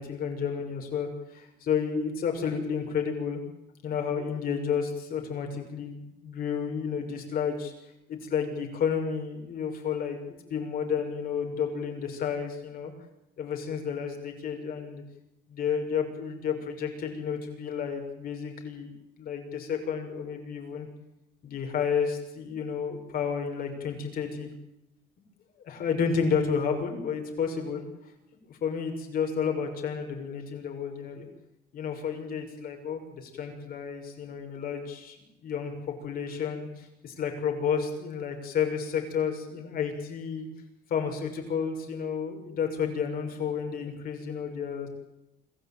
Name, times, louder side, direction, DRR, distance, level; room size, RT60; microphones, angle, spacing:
voice 1, 0.0-3.4 3.8-7.7 8.1-12.9 13.4-15.0 15.5-18.9 19.2-20.9 21.4-24.5 25.6-27.8 28.5-31.3 31.7-35.2 35.4-40.5 40.9-44.9, left 6 dB, 60° left, 4 dB, 6.1 m, -31 dB
26.0 x 14.5 x 9.0 m, 0.86 s
cardioid pair, 110°, 17 cm